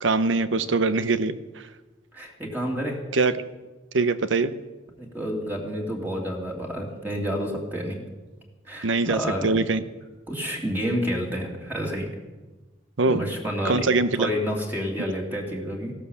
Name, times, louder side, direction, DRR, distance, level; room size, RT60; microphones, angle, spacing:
voice 1, 0.0-1.4 3.1-3.3 3.9-4.5 8.8-9.8 13.0-13.2 13.6-14.3, right 3 dB, 80° right, 13 dB, 0.9 m, -22 dB
voice 2, 2.1-3.0 5.0-8.0 8.7-9.6 10.3-12.1 13.1-15.9, equal, 10° right, -1 dB, 2.8 m, -29 dB
16.0 x 12.5 x 7.2 m, 1.2 s
head